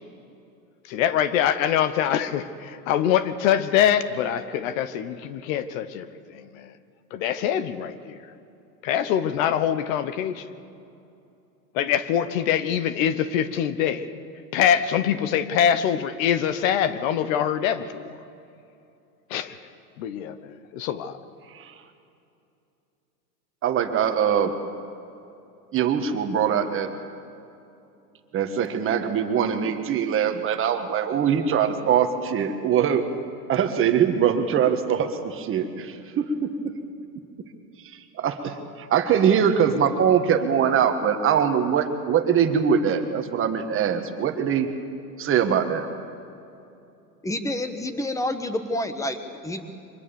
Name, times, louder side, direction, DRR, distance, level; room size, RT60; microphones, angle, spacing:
voice 1, 0.9-6.7 7.1-8.2 8.8-10.4 11.7-14.1 14.5-18.1 19.3-19.6 20.0-21.2, left 9 dB, 55° left, 13 dB, 1.2 m, -24 dB
voice 2, 23.6-24.5 25.7-26.9 28.3-33.0 33.5-36.7 38.2-44.7 45.2-45.9, right 8 dB, 25° right, 7 dB, 1.5 m, -22 dB
voice 3, 47.2-49.6, left 1 dB, 5° left, 9 dB, 1.2 m, -28 dB
24.0 x 20.5 x 7.0 m, 2.7 s
supercardioid pair, 135°, 49 cm